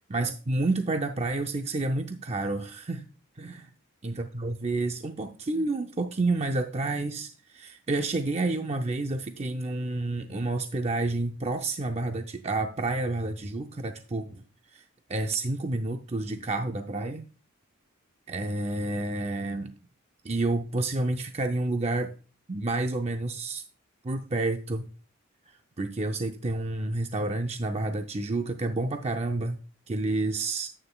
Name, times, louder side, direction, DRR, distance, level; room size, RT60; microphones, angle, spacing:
voice 1, 0.1-3.1 3.4-3.7 4.0-14.4 14.7-14.8 15.1-17.2 18.3-19.7 20.2-22.1 22.5-23.6 24.0-24.9 25.5-29.6 29.9-30.7, right 2 dB, 30° right, 6 dB, 0.5 m, -29 dB
9.9 x 8.8 x 2.2 m, 0.36 s
head